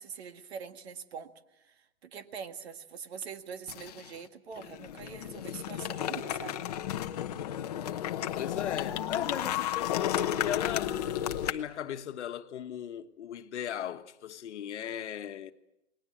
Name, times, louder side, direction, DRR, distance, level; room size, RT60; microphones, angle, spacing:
voice 1, 0.0-6.6, right 7 dB, 65° right, 1.9 m, -44 dB
sound 1, 3.7-4.2 4.5-11.5, left 11 dB, 35° left, 0.9 m, -33 dB
voice 2, 8.3-11.0 11.5-15.5, left 10 dB, 75° left, 1.3 m, -37 dB
29.0 x 20.0 x 7.7 m
hypercardioid pair, 180°, 35 cm